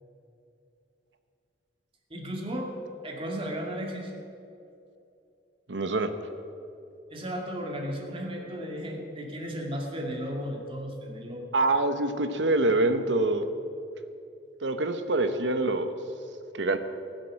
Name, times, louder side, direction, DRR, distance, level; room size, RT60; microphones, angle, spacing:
voice 1, 2.1-2.7 3.0-4.1 7.1-11.5, equal, 30° right, 0 dB, 2.3 m, -34 dB
voice 2, 5.7-6.1 11.5-13.5 14.6-15.9 16.5-16.8, right 2 dB, 75° right, 9 dB, 1.0 m, -25 dB
19.5 x 7.6 x 6.5 m, 2.7 s
head